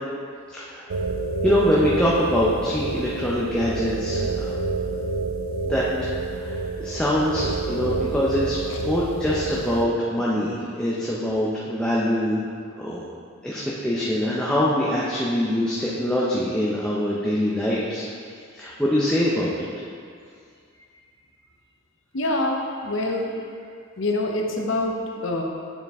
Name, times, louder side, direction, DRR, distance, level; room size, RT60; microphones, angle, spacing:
voice 1, 0.5-0.9 1.4-4.6 5.6-5.8 6.3-8.6 8.8-12.4 12.8-13.0 13.4-18.1 18.5-19.7, left 1 dB, 5° left, -7 dB, 0.5 m, -24 dB
sound 1, 0.9-9.9, right 3 dB, 75° right, 0.5 m, -28 dB
voice 2, 22.1-23.3 24.0-25.4, left 2 dB, 65° left, 1 dB, 0.7 m, -26 dB
9.0 x 4.3 x 3.5 m, 2.2 s
head